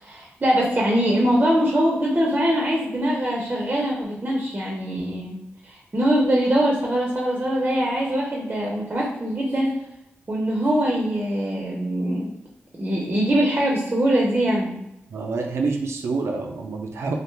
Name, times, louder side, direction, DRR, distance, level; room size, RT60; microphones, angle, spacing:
voice 1, 0.0-5.3 5.6-9.7 10.3-12.3 12.8-14.8, equal, 35° right, -3 dB, 0.6 m, -22 dB
voice 2, 15.1-17.1, right 4 dB, 80° right, 2 dB, 0.4 m, -27 dB
2.4 x 2.2 x 3.2 m, 0.84 s
cardioid pair, 70°, 5 cm